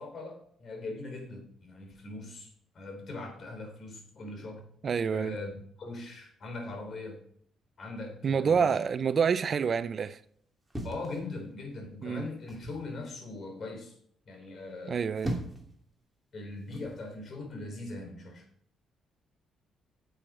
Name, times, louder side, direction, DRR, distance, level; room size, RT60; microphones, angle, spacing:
voice 1, 0.0-4.6 5.1-7.2 7.8-8.9 10.8-13.9 14.3-15.0 16.3-18.5, left 2 dB, 50° left, 3.8 m, -41 dB
voice 2, 4.8-5.4 8.2-10.2 12.0-12.3 14.9-15.3, right 6 dB, 50° right, 0.5 m, -27 dB
sound 1, 10.7-11.8 12.5-12.9 14.8-15.7 16.7-17.0, right 1 dB, 5° right, 2.6 m, -38 dB
9.8 x 7.8 x 5.0 m
cardioid pair, 90°, 0 cm